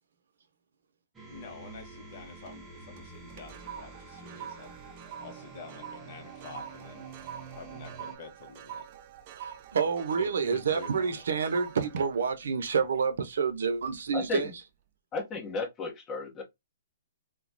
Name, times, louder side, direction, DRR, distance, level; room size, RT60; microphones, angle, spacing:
sound 1, 1.1-8.2, right 4 dB, 10° right, 0.7 m, -48 dB
voice 1, 1.3-4.8 5.2-7.1 7.5-8.8 10.2-11.2, left 4 dB, 45° left, 0.9 m, -47 dB
sound 2, 2.1-2.6 3.0-13.5 14.0-14.3, right 9 dB, 40° right, 0.3 m, -46 dB
voice 2, 9.4-14.5, right 5 dB, 70° right, 0.7 m, -28 dB
voice 3, 15.1-16.4, left 4 dB, 20° left, 1.2 m, -34 dB
3.0 x 2.3 x 2.5 m
hypercardioid pair, 150°, 0 cm